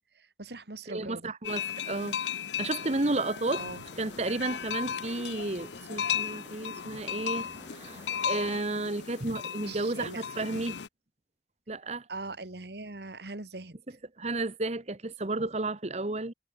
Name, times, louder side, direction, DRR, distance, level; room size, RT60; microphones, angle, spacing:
voice 1, 0.1-1.3 3.5-3.9 9.7-10.5 12.1-13.8, right 3 dB, 65° right, 2.1 m, -41 dB
voice 2, 0.9-3.7 4.0-10.8 11.7-12.0 14.2-16.3, right 2 dB, 40° right, 1.2 m, -32 dB
sound 1, 1.4-10.9, left 8 dB, 85° left, 0.8 m, -36 dB
sound 2, 3.4-8.6, right 1 dB, 15° right, 3.8 m, -53 dB
head